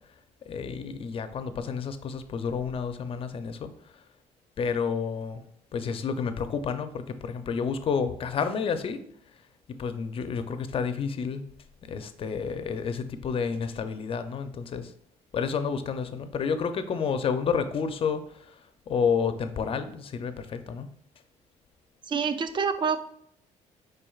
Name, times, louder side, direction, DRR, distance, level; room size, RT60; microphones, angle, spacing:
voice 1, 0.5-3.7 4.6-5.4 5.7-9.0 9.8-11.5 11.9-14.9 15.3-18.2 18.9-20.9, left 6 dB, 45° left, 10 dB, 0.5 m, -30 dB
voice 2, 22.1-23.0, right 6 dB, 35° right, 10 dB, 0.5 m, -26 dB
4.9 x 4.5 x 2.3 m, 0.67 s
cardioid pair, 90°, 13 cm